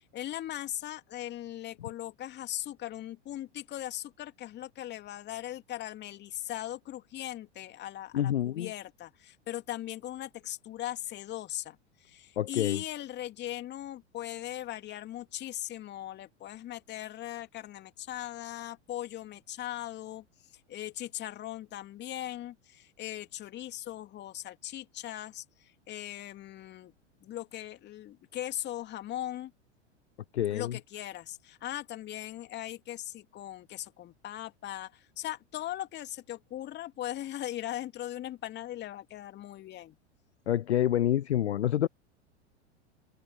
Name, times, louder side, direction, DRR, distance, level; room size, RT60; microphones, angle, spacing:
voice 1, 0.1-20.2 20.7-26.9 27.2-29.5 30.5-40.0, left 13 dB, 30° left, 2.6 m, -39 dB
voice 2, 8.1-8.7 12.4-12.8 30.3-30.7 40.5-41.9, left 11 dB, 65° left, 0.9 m, -27 dB
figure-of-eight pair, 90°, 35 cm